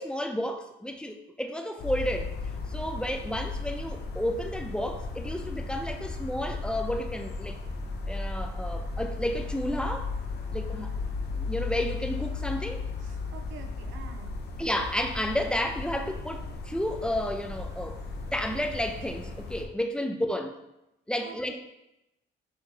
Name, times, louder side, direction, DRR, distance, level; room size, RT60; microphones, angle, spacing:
voice 1, 0.0-2.3 2.7-7.6 8.1-10.1 10.5-10.9 11.3-12.8 14.6-18.0 18.3-20.6 21.1-21.6, left 1 dB, 5° left, 5 dB, 0.4 m, -31 dB
sound 1, 1.8-19.6, left 3 dB, 55° left, 0.7 m, -35 dB
voice 2, 13.0-14.3 20.0-20.1 21.2-21.6, right 6 dB, 80° right, 6 dB, 0.6 m, -47 dB
5.7 x 2.6 x 3.2 m, 0.89 s
cardioid pair, 90°, 20 cm